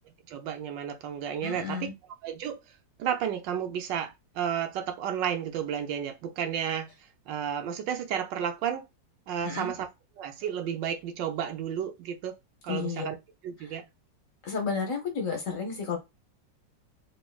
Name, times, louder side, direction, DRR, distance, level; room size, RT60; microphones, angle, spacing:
voice 1, 0.0-1.9 2.2-2.6 3.0-6.9 7.3-8.9 9.3-9.9 10.2-12.4 12.6-13.2 13.4-13.9, right 8 dB, 80° right, 1.4 m, -32 dB
voice 2, 1.4-1.9 9.4-9.7 12.7-13.1 13.6-13.7 14.4-16.0, left 5 dB, 55° left, 1.1 m, -32 dB
3.5 x 3.1 x 2.3 m
omnidirectional pair, 2.0 m